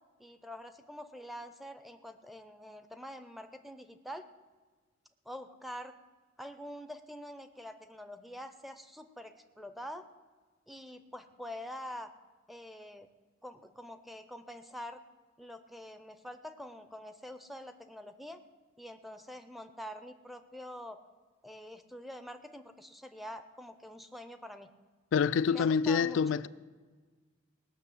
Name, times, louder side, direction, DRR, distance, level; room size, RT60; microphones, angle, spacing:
voice 1, 0.2-4.3 5.3-6.0 6.4-10.1 10.7-12.1 12.5-13.1 13.4-15.0 15.4-18.4 18.8-21.0 21.4-24.7 25.5-26.2, equal, ahead, 0.6 m, -45 dB
voice 2, 25.1-26.5, left 6 dB, 70° left, 0.3 m, -27 dB
18.5 x 6.4 x 7.9 m
head